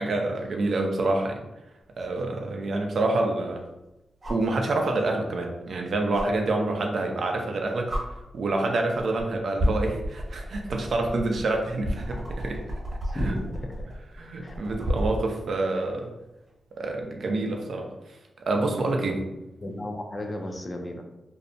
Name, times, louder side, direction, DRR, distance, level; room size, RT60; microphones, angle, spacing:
voice 1, 0.0-1.4 2.0-3.6 4.3-7.9 8.3-12.6 13.2-13.4 14.1-16.1 16.8-17.9 18.5-19.3, right 2 dB, 70° right, 2 dB, 0.4 m, -27 dB
sound 1, 2.0-2.1 4.2-4.5 6.1-6.3 7.4-7.5 7.9-8.0 8.9-9.2 9.6-15.2 16.9-17.0, equal, 35° right, 1.0 m, -31 dB
voice 2, 13.0-13.9 14.4-14.6 19.6-21.0, left 1 dB, 30° left, 3 dB, 0.4 m, -34 dB
2.6 x 2.0 x 2.5 m, 0.96 s
cardioid pair, 70°, 0 cm